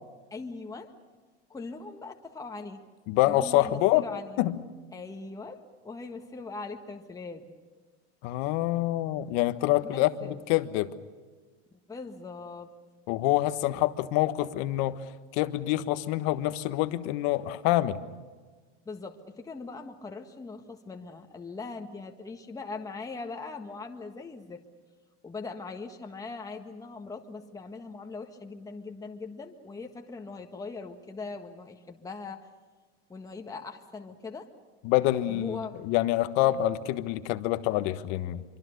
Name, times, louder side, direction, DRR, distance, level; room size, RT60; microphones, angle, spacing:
voice 1, 0.3-0.9 1.5-2.9 3.2-4.4 4.9-7.4 9.9-10.4 11.9-12.7 18.8-24.6 25.2-32.5 33.1-34.5 35.3-35.7, left 4 dB, 10° left, 3 dB, 1.6 m, -40 dB
voice 2, 3.1-4.0 4.4-4.5 8.2-10.9 13.1-15.0 15.3-18.0 34.8-38.4, left 15 dB, 55° left, 11 dB, 1.4 m, -26 dB
25.5 x 24.5 x 6.7 m, 1.4 s
supercardioid pair, 125°, 34 cm